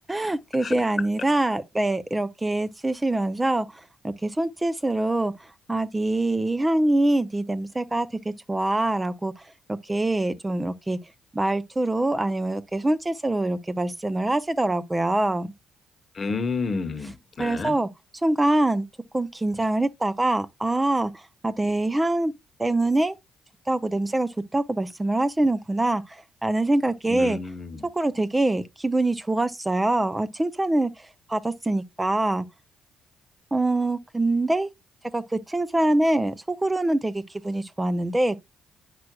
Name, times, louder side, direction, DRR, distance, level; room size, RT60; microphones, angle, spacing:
voice 1, 0.1-3.7 4.0-5.3 5.7-9.3 9.8-11.0 11.3-15.5 17.4-17.9 18.2-18.9 19.1-22.3 22.6-23.2 23.7-27.4 27.9-30.9 31.3-32.4 33.5-34.7 35.1-38.4, right 2 dB, 20° right, 0.5 m, -24 dB
voice 2, 16.1-17.7 27.1-27.9, left 4 dB, 45° left, 1.1 m, -30 dB
8.4 x 5.9 x 2.3 m
hypercardioid pair, 50°, 0 cm